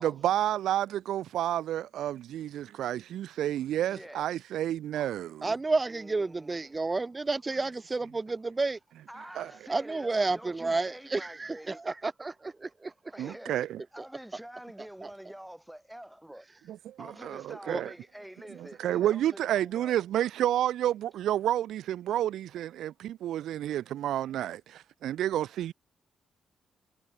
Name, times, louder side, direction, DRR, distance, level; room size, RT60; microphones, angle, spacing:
voice 1, 0.0-5.5 9.4-9.5 13.2-13.8 16.7-17.9 18.6-25.7, right 12 dB, 85° right, 0.8 m, -30 dB
voice 2, 3.9-4.3 5.9-6.7 9.1-11.8 13.1-16.5 17.0-19.9, right 1 dB, 5° right, 8.0 m, -47 dB
voice 3, 5.4-8.8 9.7-12.9 15.0-15.1 17.7-17.8, right 3 dB, 25° right, 1.4 m, -31 dB
cardioid pair, 90°, 0 cm